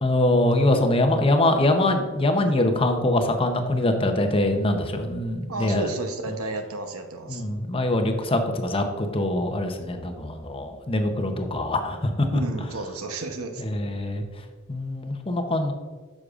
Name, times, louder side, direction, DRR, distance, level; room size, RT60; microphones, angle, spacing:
voice 1, 0.0-5.9 7.3-12.4 13.6-14.2 14.7-15.7, left 1 dB, 25° left, 5 dB, 0.7 m, -23 dB
voice 2, 5.5-7.4 12.3-13.6, right 2 dB, 75° right, 6 dB, 0.9 m, -32 dB
9.8 x 6.4 x 2.4 m, 1.4 s
head